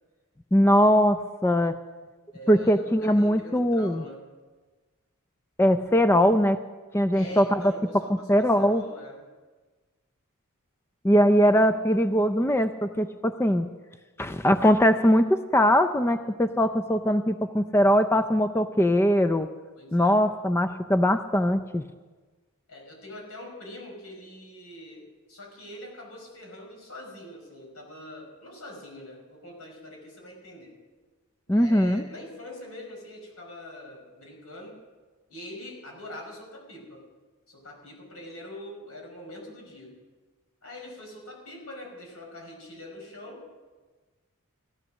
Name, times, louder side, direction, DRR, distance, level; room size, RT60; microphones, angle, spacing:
voice 1, 0.5-1.7 2.5-4.0 5.6-6.6 6.9-7.6 8.3-8.8 11.0-13.7 14.2-19.5 19.9-21.8 31.5-32.0, equal, 10° left, 9 dB, 0.4 m, -21 dB
voice 2, 2.3-4.2 7.1-9.2 19.8-20.2 22.7-30.7 31.5-34.8 35.3-37.0 37.5-39.9 40.6-43.4, left 1 dB, 75° left, 0 dB, 5.7 m, -43 dB
16.5 x 13.0 x 6.4 m, 1.3 s
head